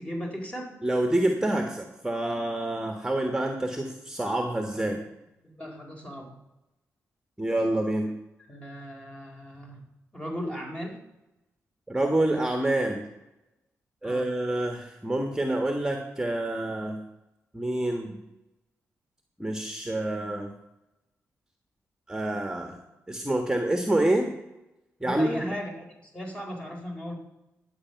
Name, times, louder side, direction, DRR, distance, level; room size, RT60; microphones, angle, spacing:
voice 1, 0.0-0.7 3.7-3.9 4.7-5.0 5.4-6.4 8.5-9.9 10.1-11.0 14.0-14.3 25.0-27.2, equal, 20° left, 0 dB, 4.2 m, -37 dB
voice 2, 0.8-5.0 7.4-8.1 11.9-13.0 14.0-17.0 17.5-18.2 19.4-20.5 22.1-22.8 23.1-24.3 25.0-25.5, right 1 dB, 10° right, 4 dB, 1.6 m, -27 dB
11.5 x 8.4 x 5.9 m, 0.93 s
cardioid pair, 55°, 6 cm